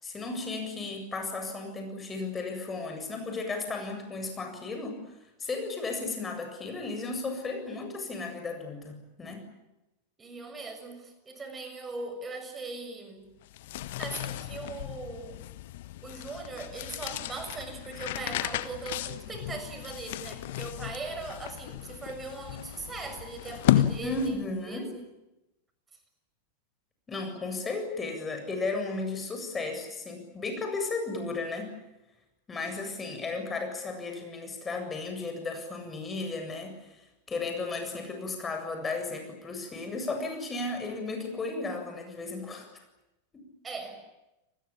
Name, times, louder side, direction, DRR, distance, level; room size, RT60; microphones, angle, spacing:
voice 1, 0.0-5.0 5.4-9.4 24.0-24.9 27.1-31.7 32.5-36.7 37.3-42.7 43.3-43.5, left 3 dB, 15° left, 5 dB, 7.7 m, -34 dB
voice 2, 10.2-13.3 14.0-15.4 16.0-25.0 43.6-44.0, right 3 dB, 15° right, 7 dB, 6.8 m, -40 dB
sound 1, 13.4-24.6, left 13 dB, 55° left, 1.4 m, -33 dB
30.0 x 21.0 x 8.7 m, 0.94 s
figure-of-eight pair, 90°, 0 cm